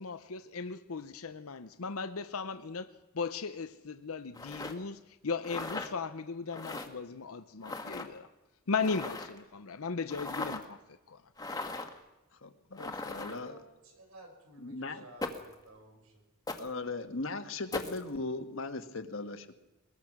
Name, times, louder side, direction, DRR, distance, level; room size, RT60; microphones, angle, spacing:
voice 1, 0.0-8.3 8.7-10.8 11.1-11.2, left 4 dB, 80° left, 0.8 m, -37 dB
sound 1, 4.3-4.7 5.4-5.9 6.5-6.9 7.6-8.1 8.8-9.4 10.1-10.6 11.4-12.0 12.8-13.5 15.2-15.5 16.5-16.7 17.7-18.0, left 2 dB, 15° left, 1.5 m, -38 dB
voice 2, 12.4-13.6 14.6-15.0 16.6-19.6, left 3 dB, 60° left, 1.5 m, -38 dB
voice 3, 13.0-16.2, right 1 dB, 80° right, 5.6 m, -54 dB
21.5 x 21.0 x 6.0 m
head